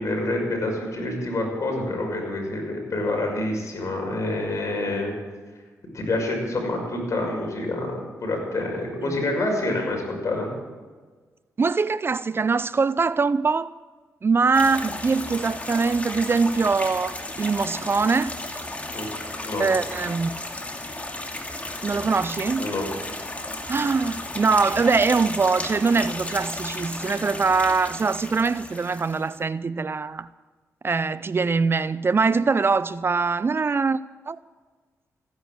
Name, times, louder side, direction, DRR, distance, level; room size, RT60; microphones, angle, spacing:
voice 1, 0.0-5.2 5.9-10.5 18.9-19.1 19.4-19.7 22.6-22.8, left 2 dB, 55° left, 6.0 m, -27 dB
voice 2, 11.6-13.7 14.2-18.4 19.6-20.4 21.8-22.7 23.7-30.3 30.8-34.0 34.3-34.4, right 4 dB, 40° right, 0.5 m, -23 dB
sound 1, 14.5-29.3, left 1 dB, 20° left, 2.6 m, -34 dB
15.5 x 10.5 x 7.8 m
supercardioid pair, 50°, 6 cm